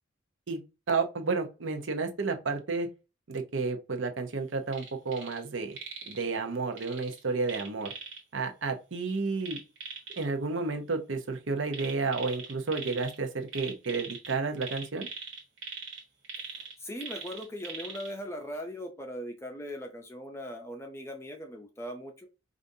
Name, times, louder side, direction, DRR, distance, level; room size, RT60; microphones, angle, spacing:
voice 1, 0.9-2.9 3.3-5.8 6.1-7.9 8.3-9.6 10.2-15.1, right 4 dB, 75° right, 0.8 m, -31 dB
sound 1, 4.7-5.4 5.7-6.2 6.8-8.2 9.4-10.3 11.7-13.2 13.5-18.1 18.5-18.6, right 5 dB, 90° right, 1.4 m, -41 dB
voice 2, 16.8-22.3, equal, 15° left, 0.5 m, -39 dB
5.0 x 2.5 x 2.6 m
head